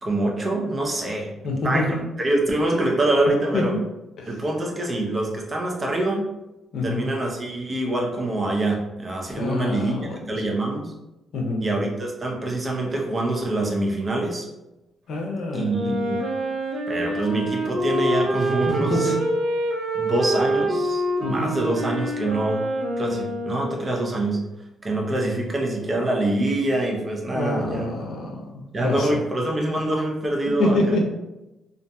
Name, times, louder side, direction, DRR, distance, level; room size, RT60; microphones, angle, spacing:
voice 1, 0.0-3.8 4.3-6.3 6.8-10.9 11.6-14.5 15.5-16.2 16.9-19.2 19.9-22.7 23.0-24.4 24.8-27.9 28.7-31.1, right 2 dB, 30° right, 0 dB, 0.6 m, -25 dB
voice 2, 1.4-2.0 3.5-3.8 4.2-4.3 6.7-7.0 9.4-10.2 11.3-11.6 15.1-15.9 18.9-19.1 21.2-21.5 27.3-28.4 28.8-29.1 30.6-31.1, left 2 dB, 70° left, 1 dB, 0.6 m, -25 dB
Wind instrument woodwind instrument, 15.7-24.0, right 1 dB, 75° right, 0.5 m, -26 dB
2.6 x 2.5 x 2.3 m, 0.97 s
cardioid pair, 90°, 0 cm